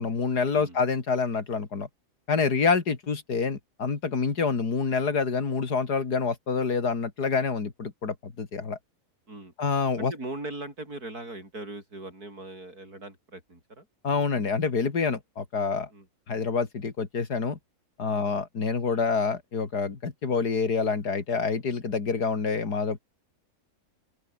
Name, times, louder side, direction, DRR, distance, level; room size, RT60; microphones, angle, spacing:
voice 1, 0.0-1.9 2.3-8.8 9.6-10.1 14.0-15.9 16.3-17.6 18.0-23.0, left 5 dB, 90° left, 3.1 m, -27 dB
voice 2, 10.0-13.9 15.9-16.1 18.1-18.2, right 2 dB, 70° right, 8.1 m, -40 dB
open air
omnidirectional pair, 1.7 m